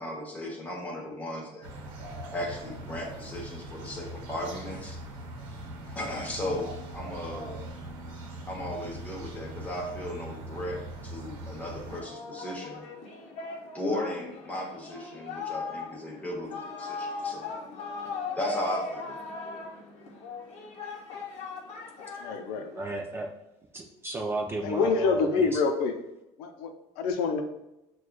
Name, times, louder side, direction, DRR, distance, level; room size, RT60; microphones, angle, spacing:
voice 1, 0.0-1.7 2.3-5.0 5.9-7.6 8.5-12.8 13.7-17.4 18.4-19.1, left 1 dB, 10° left, -1 dB, 0.8 m, -36 dB
sound 1, 1.6-12.0, right 1 dB, 85° right, 0.8 m, -41 dB
Singing, 11.9-22.9, left 4 dB, 50° left, 0.7 m, -39 dB
voice 2, 22.2-22.8 24.6-26.0 26.4-27.4, left 4 dB, 85° left, 6 dB, 0.5 m, -27 dB
voice 3, 22.7-23.3 23.7-25.6, right 2 dB, 15° right, 1 dB, 0.3 m, -34 dB
6.1 x 2.3 x 2.2 m, 0.90 s
cardioid pair, 155°, 14 cm